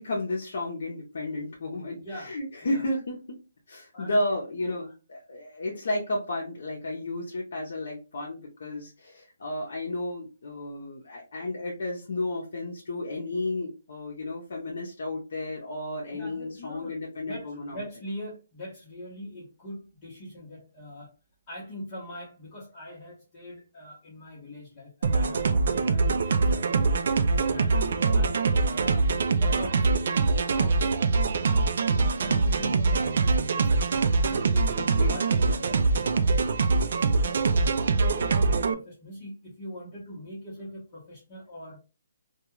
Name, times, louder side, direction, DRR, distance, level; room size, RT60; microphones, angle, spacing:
voice 1, 0.0-3.4 3.7-17.8 34.8-35.1, left 1 dB, 65° left, -2 dB, 0.7 m, -32 dB
voice 2, 2.0-2.9 3.9-4.3 4.6-4.9 16.1-17.0 17.3-21.1 21.5-33.6 34.2-36.4 36.8-41.8, equal, 25° left, -8 dB, 0.9 m, -42 dB
sound 1, 25.0-38.7, right 4 dB, 60° right, 0.3 m, -24 dB
2.3 x 2.3 x 3.0 m, 0.31 s
hypercardioid pair, 165°, 0 cm